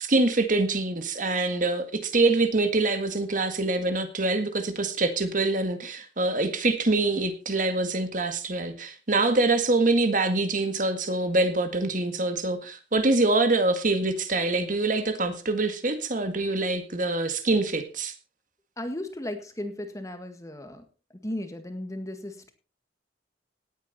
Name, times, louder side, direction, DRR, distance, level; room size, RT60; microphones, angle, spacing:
voice 1, 0.0-18.1, right 2 dB, 45° right, 8 dB, 1.9 m, -25 dB
voice 2, 18.8-20.8 21.1-22.5, left 1 dB, 20° left, 7 dB, 1.8 m, -35 dB
18.0 x 9.0 x 4.2 m, 0.34 s
head